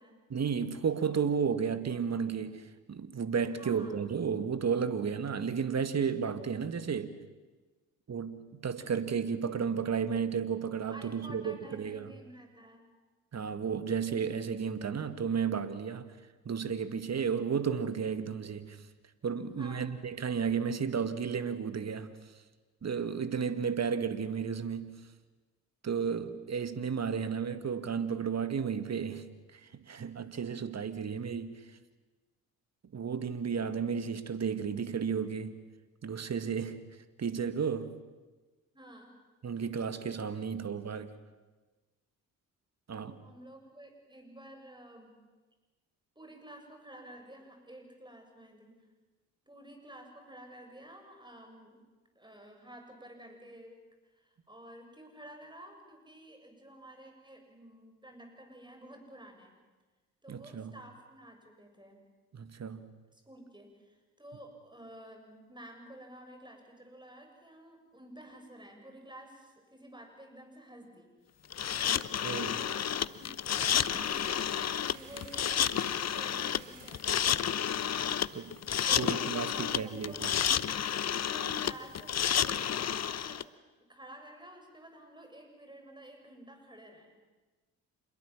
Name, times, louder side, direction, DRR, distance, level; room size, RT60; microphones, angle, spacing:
voice 1, 0.3-7.1 8.1-12.1 13.3-16.1 16.5-18.8 19.2-22.1 22.8-25.0 25.8-31.6 32.9-35.6 36.0-36.8 37.2-37.9 39.4-41.1 42.9-43.2 60.3-60.7 62.3-62.9 72.2-72.5 78.3-78.5 79.0-80.3, right 6 dB, 40° right, 11 dB, 2.1 m, -33 dB
voice 2, 3.4-4.0 10.8-12.8 19.4-20.0 38.7-39.2 43.2-45.1 46.2-48.8 49.5-51.8 52.2-53.8 54.1-59.5 60.2-62.0 63.1-71.1 71.8-78.1 78.9-80.4 81.2-83.5 83.8-87.2, right 1 dB, 10° right, 4 dB, 7.3 m, -51 dB
sound 1, 71.5-83.4, left 9 dB, 40° left, 0.9 m, -30 dB
sound 2, 73.5-78.5, right 9 dB, 75° right, 2.7 m, -55 dB
27.5 x 22.0 x 7.4 m, 1.3 s
hypercardioid pair, 50°, 41 cm